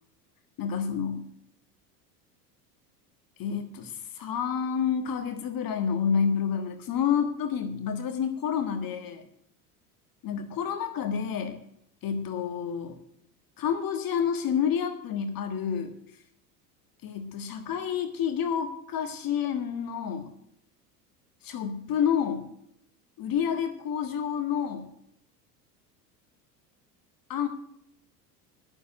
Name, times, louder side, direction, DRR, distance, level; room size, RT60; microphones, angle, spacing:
voice 1, 0.6-1.3 3.4-9.3 10.2-11.6 12.0-13.0 13.6-15.9 17.0-20.3 21.4-22.5 23.2-24.9 27.3-27.5, left 7 dB, 45° left, 7 dB, 1.6 m, -29 dB
11.5 x 7.0 x 8.7 m, 0.71 s
hypercardioid pair, 85°, 49 cm